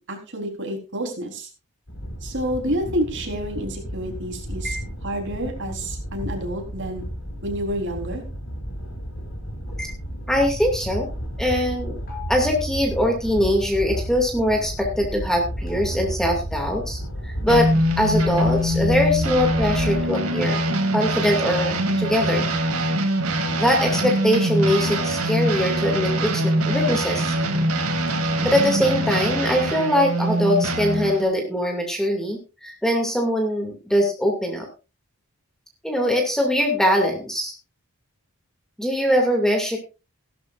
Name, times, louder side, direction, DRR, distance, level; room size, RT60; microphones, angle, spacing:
voice 1, 0.0-1.5 2.2-4.8 5.0-7.0 7.4-8.2, equal, 55° right, 3 dB, 3.9 m, -29 dB
sound 1, 1.9-20.0, equal, 65° left, 3.8 m, -33 dB
voice 2, 10.3-11.1 11.4-11.9 12.3-20.6 20.9-22.5 23.6-27.3 28.4-34.7 35.8-37.5 38.8-39.8, equal, ahead, 2 dB, 2.4 m, -22 dB
sound 2, 12.1-13.9 15.7-17.5 18.6-20.4 21.7-23.1 24.8-26.1 28.1-29.3, right 3 dB, 45° left, 7.0 m, -39 dB
sound 3, 17.5-31.3, right 1 dB, 80° right, 2.4 m, -23 dB
16.5 x 13.0 x 2.5 m, 0.30 s
head